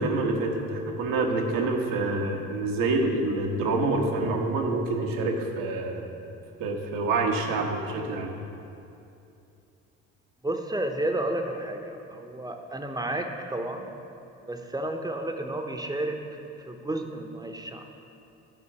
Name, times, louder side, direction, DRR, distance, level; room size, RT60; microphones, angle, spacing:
voice 1, 0.0-6.1 6.6-8.3, right 2 dB, 70° right, 2 dB, 1.1 m, -27 dB
voice 2, 10.4-13.9 14.5-16.2 16.6-17.9, right 1 dB, 10° right, 4 dB, 0.9 m, -31 dB
10.0 x 4.5 x 5.9 m, 2.7 s
hypercardioid pair, 55°, 34 cm